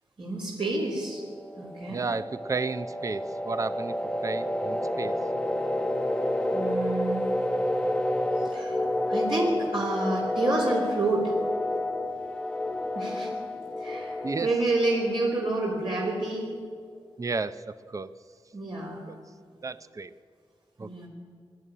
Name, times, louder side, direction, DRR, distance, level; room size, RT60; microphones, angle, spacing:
voice 1, 0.2-1.2 1.6-2.0 6.5-7.3 8.4-11.3 12.9-13.4 13.8-14.1 14.4-16.5 18.5-19.0 20.8-21.1, right 2 dB, 50° right, -4 dB, 3.7 m, -29 dB
pulse pad, 1.5-16.0, left 1 dB, 10° left, 0.8 m, -30 dB
voice 2, 1.9-3.9 4.2-5.1 14.2-14.5 17.2-18.1 19.1-19.2 19.6-20.1 20.8-21.1, right 4 dB, 30° right, 13 dB, 0.6 m, -32 dB
21.5 x 12.5 x 9.9 m, 2.1 s
wide cardioid pair, 115°, 10 cm